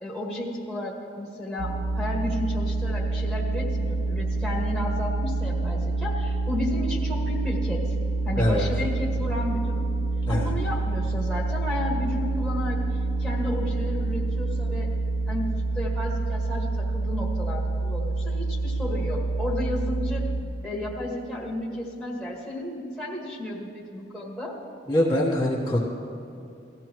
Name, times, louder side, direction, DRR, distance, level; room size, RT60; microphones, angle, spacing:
voice 1, 0.0-7.8 8.3-9.9 10.3-12.8 13.2-14.9 15.3-20.2 20.6-24.6, left 1 dB, ahead, -5 dB, 1.8 m, -32 dB
sound 1, 1.6-20.4, right 3 dB, 75° right, 0.8 m, -27 dB
voice 2, 8.4-8.7 10.3-10.5 24.9-25.8, left 1 dB, 15° left, -7 dB, 1.3 m, -23 dB
18.0 x 15.0 x 3.1 m, 2.6 s
head